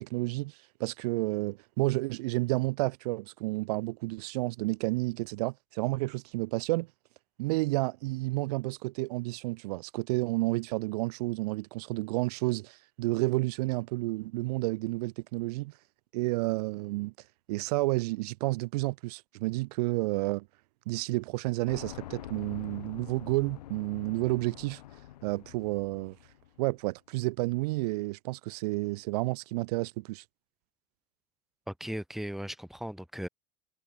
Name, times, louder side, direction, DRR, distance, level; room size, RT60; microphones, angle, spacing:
voice 1, 0.0-6.9 7.4-15.7 16.1-17.1 17.5-20.5 20.9-24.8 25.2-26.2 26.6-30.2, right 22 dB, 75° right, 1.3 m, -31 dB
sound 1, 21.7-26.6, left 13 dB, 85° left, 4.9 m, -46 dB
voice 2, 31.7-33.3, equal, ahead, 2.0 m, -37 dB
hypercardioid pair, 80°, 20 cm